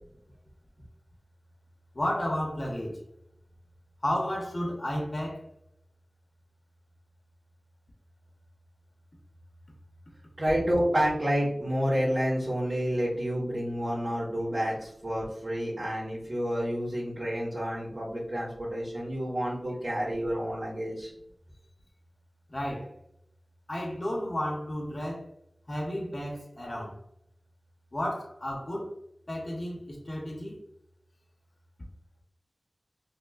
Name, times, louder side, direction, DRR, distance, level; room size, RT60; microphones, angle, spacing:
voice 1, 1.9-3.0 4.0-5.5 22.5-22.9 23.7-25.3 25.7-27.0 27.9-28.9 29.3-30.6, left 1 dB, 45° left, -1 dB, 0.8 m, -32 dB
voice 2, 10.4-21.1, equal, 65° right, -10 dB, 1.3 m, -29 dB
5.4 x 2.1 x 2.3 m, 0.75 s
wide cardioid pair, 55°, 0 cm